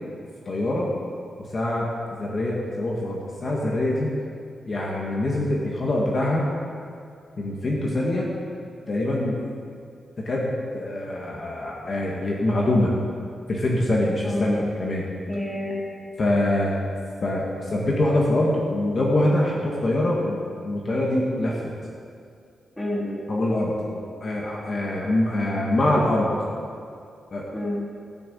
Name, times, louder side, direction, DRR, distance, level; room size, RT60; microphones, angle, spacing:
voice 1, 0.5-0.9 1.5-4.1 4.7-6.5 7.4-8.3 8.9-9.4 10.2-13.0 13.5-15.1 16.2-16.7 17.2-21.6 23.3-26.4 27.3-27.5, left 1 dB, 35° left, -3 dB, 1.8 m, -24 dB
voice 2, 14.0-14.7 15.3-15.8 22.8-23.3 27.5-27.8, left 1 dB, 10° left, -3 dB, 2.2 m, -29 dB
15.0 x 7.0 x 8.7 m, 2.4 s
wide cardioid pair, 175°, 0 cm